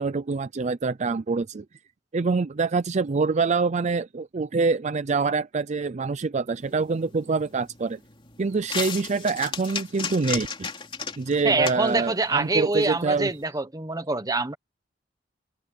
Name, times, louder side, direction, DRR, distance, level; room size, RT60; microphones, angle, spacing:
voice 1, 0.0-1.6 2.1-8.0 8.4-10.7 11.2-13.3, right 4 dB, 40° right, 0.5 m, -25 dB
sound 1, 6.6-13.4, left 5 dB, 30° left, 3.1 m, -36 dB
voice 2, 11.4-14.5, right 3 dB, 20° right, 1.3 m, -25 dB
head